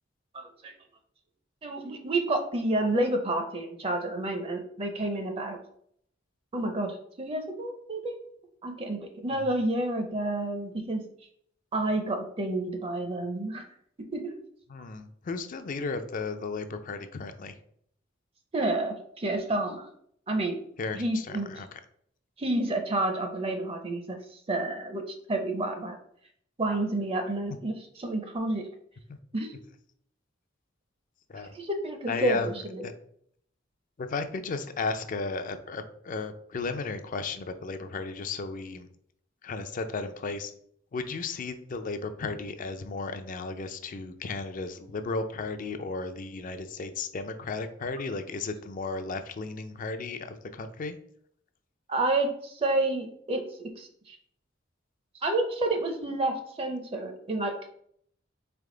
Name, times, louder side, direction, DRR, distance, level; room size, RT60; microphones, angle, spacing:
voice 1, 0.3-0.7 1.6-5.6 6.5-8.2 8.6-11.0 11.7-13.6 14.1-14.4 18.5-19.9 20.3-20.6 20.9-21.5 22.4-24.2 24.5-25.0 25.3-26.0 26.6-28.6 29.3-29.6 31.5-32.4 32.7-32.8 51.9-54.2 55.2-57.7, right 2 dB, 30° right, 5 dB, 0.5 m, -29 dB
voice 2, 14.7-17.6 20.8-21.8 29.1-29.2 31.3-31.5 32.1-32.9 34.0-38.9 39.4-40.5 40.9-51.0, left 3 dB, 45° left, 9 dB, 0.4 m, -34 dB
3.8 x 3.4 x 3.7 m, 0.67 s
head